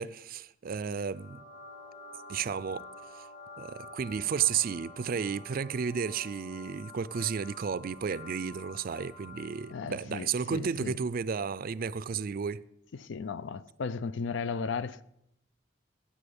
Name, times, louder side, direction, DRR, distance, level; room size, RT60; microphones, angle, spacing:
voice 1, 0.0-1.4 2.3-2.8 3.6-12.6, right 6 dB, 50° right, 0.4 m, -32 dB
sound 1, 1.0-9.9, left 2 dB, 50° left, 3.4 m, -49 dB
voice 2, 9.7-11.0 12.9-15.0, left 5 dB, 80° left, 0.5 m, -35 dB
10.0 x 7.7 x 7.0 m
head